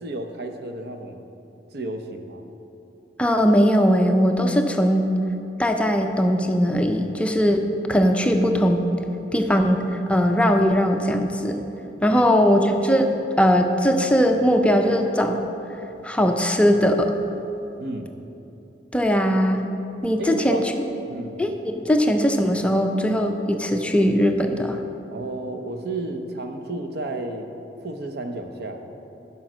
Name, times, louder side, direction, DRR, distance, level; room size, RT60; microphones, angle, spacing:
voice 1, 0.0-1.2 1.7-2.5 12.1-12.2 17.8-18.1 20.2-20.7 21.1-21.4 25.1-27.5 27.8-28.8, right 2 dB, 65° right, 6 dB, 0.7 m, -32 dB
voice 2, 3.2-5.1 5.6-8.8 9.3-11.6 12.0-13.0 13.4-15.4 16.0-17.1 18.9-19.6 20.0-20.6 21.4-24.8, equal, 5° left, 4 dB, 0.5 m, -20 dB
10.5 x 5.6 x 6.1 m, 2.9 s
head